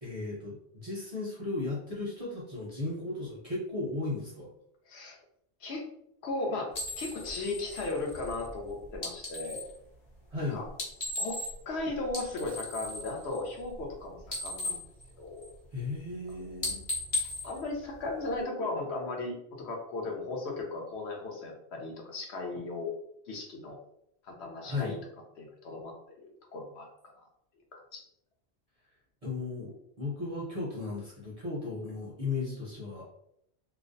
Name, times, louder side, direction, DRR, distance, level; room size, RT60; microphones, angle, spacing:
voice 1, 0.0-4.5 10.3-10.6 15.7-16.8 24.6-25.0 29.2-33.0, left 3 dB, 45° right, -5 dB, 0.5 m, -35 dB
voice 2, 4.9-5.2 5.6-5.8 6.2-6.7 7.0-9.6 10.5-10.7 11.2-11.4 11.7-14.8 15.2-15.5 17.4-22.9 23.3-23.8 24.2-25.0 25.4-26.9 27.2-27.3 27.7-28.0, left 2 dB, 75° left, 0 dB, 0.8 m, -36 dB
sound 1, 6.7-9.7 10.7-11.8 12.0-13.9 14.2-15.7 16.1-16.3 16.6-18.4, left 2 dB, 40° left, 0.6 m, -37 dB
2.4 x 2.0 x 2.5 m, 0.75 s
omnidirectional pair, 1.2 m